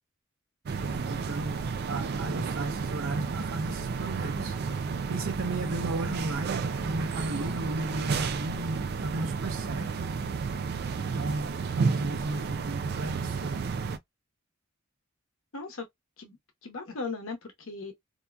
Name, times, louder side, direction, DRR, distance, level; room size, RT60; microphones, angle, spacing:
sound 1, 0.7-14.0, right 5 dB, 50° right, 0.3 m, -31 dB
voice 1, 0.8-1.6 1.9-4.5 5.1-10.1 11.0-13.7, right 2 dB, 80° right, 0.7 m, -36 dB
voice 2, 15.5-15.9 16.2-17.9, left 4 dB, 80° left, 0.9 m, -38 dB
2.7 x 2.3 x 2.2 m
head